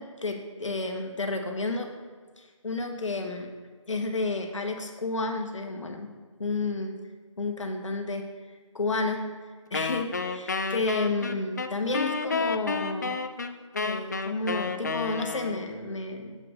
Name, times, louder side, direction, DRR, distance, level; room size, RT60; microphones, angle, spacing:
voice 1, 0.0-1.9 2.4-3.5 3.9-6.1 6.4-7.0 7.4-8.3 8.7-9.2 9.7-13.2 13.8-16.4, left 3 dB, 65° left, 4 dB, 1.3 m, -31 dB
Wind instrument woodwind instrument, 9.7-15.8, left 4 dB, 35° left, 0.4 m, -31 dB
7.8 x 5.8 x 6.3 m, 1.4 s
figure-of-eight pair, 160°, 17 cm